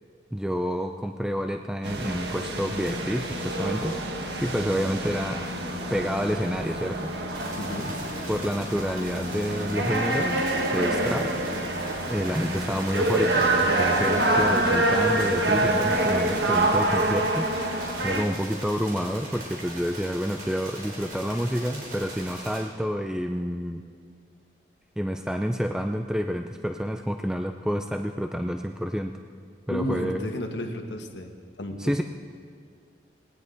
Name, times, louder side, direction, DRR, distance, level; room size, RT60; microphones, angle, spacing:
voice 1, 0.3-5.5 5.9-7.1 8.3-10.4 10.7-11.3 12.1-23.8 25.0-29.1 29.7-30.3 31.8-32.0, equal, 5° right, 5 dB, 0.4 m, -29 dB
sound 1, 1.8-18.2, right 1 dB, 70° right, 1.5 m, -26 dB
sound 2, 7.3-22.6, right 1 dB, 55° right, 4.3 m, -41 dB
voice 2, 7.6-7.9 29.7-31.3 31.6-32.0, left 1 dB, 90° left, 4 dB, 1.6 m, -32 dB
19.5 x 18.5 x 3.9 m, 2.1 s
head